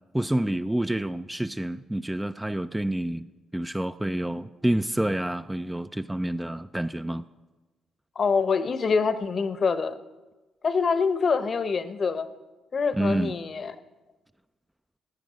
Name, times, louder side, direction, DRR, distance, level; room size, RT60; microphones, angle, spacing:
voice 1, 0.1-7.3 13.0-13.3, right 1 dB, 10° right, 11 dB, 0.3 m, -28 dB
voice 2, 8.2-9.9 10.6-12.3 12.7-13.7, left 5 dB, 45° left, 12 dB, 0.8 m, -25 dB
16.0 x 9.3 x 5.1 m, 1.2 s
cardioid pair, 90°, 0 cm